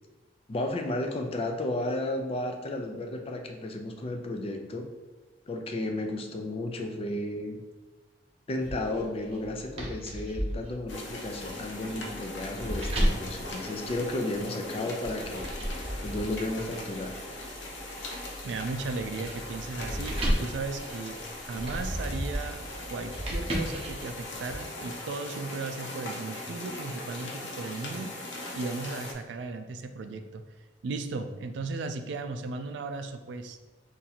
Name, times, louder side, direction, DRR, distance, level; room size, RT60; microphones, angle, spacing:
voice 1, 0.5-4.9 5.5-7.6 8.5-15.5 16.0-17.2, left 1 dB, 35° left, 4 dB, 0.4 m, -33 dB
sound 1, 8.6-14.4 15.0-24.5, equal, 35° right, 0.7 m, -34 dB
sound 2, 10.9-29.1, left 2 dB, 85° left, 0.6 m, -40 dB
voice 2, 18.4-21.2 21.4-22.6 22.9-28.1 28.5-30.4 30.8-33.6, right 3 dB, 80° right, 7 dB, 0.3 m, -36 dB
2.8 x 2.6 x 3.9 m, 1.2 s
head